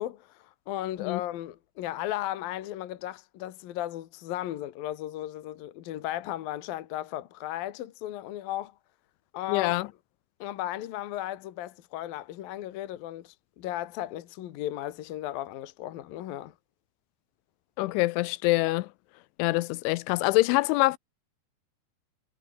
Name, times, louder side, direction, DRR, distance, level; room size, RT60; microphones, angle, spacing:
voice 1, 0.0-8.7 9.3-9.8 10.4-16.5, left 13 dB, 65° left, 2.6 m, -35 dB
voice 2, 9.5-9.9 17.8-18.9 19.4-21.0, left 21 dB, 85° left, 3.0 m, -25 dB
omnidirectional pair, 5.5 m